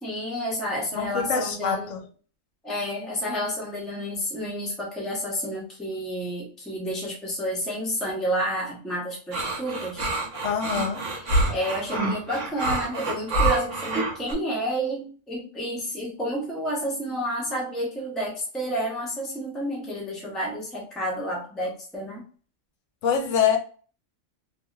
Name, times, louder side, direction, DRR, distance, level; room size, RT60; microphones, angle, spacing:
voice 1, 0.0-2.0 2.6-10.0 11.2-22.2, equal, ahead, 0.7 m, -30 dB
voice 2, 0.9-2.1 10.4-11.1 23.0-23.6, left 7 dB, 65° left, 0.9 m, -25 dB
sound 1, 9.3-14.3, right 2 dB, 65° right, 1.2 m, -26 dB
2.9 x 2.7 x 2.3 m
omnidirectional pair, 1.4 m